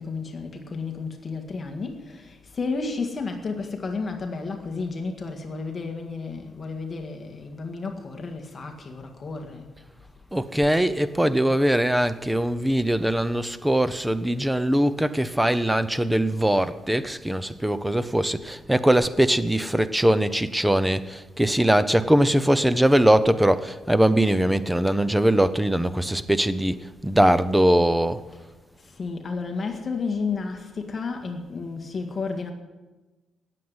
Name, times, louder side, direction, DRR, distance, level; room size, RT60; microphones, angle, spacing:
voice 1, 0.0-9.7 29.0-32.5, left 4 dB, 30° left, 1.7 m, -32 dB
voice 2, 10.3-26.8 27.0-28.2, right 1 dB, 5° right, 0.7 m, -21 dB
18.5 x 7.8 x 9.6 m
cardioid pair, 150°, 0 cm